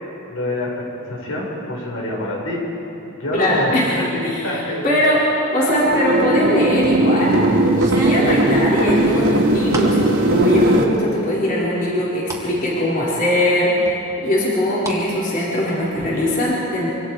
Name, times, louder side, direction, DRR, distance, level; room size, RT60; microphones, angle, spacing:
voice 1, 0.3-2.6 3.1-4.9 5.6-6.1, left 1 dB, 70° left, -2 dB, 5.3 m, -26 dB
voice 2, 3.3-3.9 4.2-7.5 7.9-16.9, left 1 dB, 40° left, -6 dB, 4.5 m, -20 dB
sound 1, 5.8-10.8, right 1 dB, 65° right, 2.9 m, -18 dB
sound 2, 6.7-7.1 7.7-10.0 10.4-11.0 11.4-12.5 12.9-13.0 13.9-15.0 15.3-16.1, right 2 dB, 15° right, 2.3 m, -33 dB
26.0 x 25.5 x 4.9 m, 3.0 s
head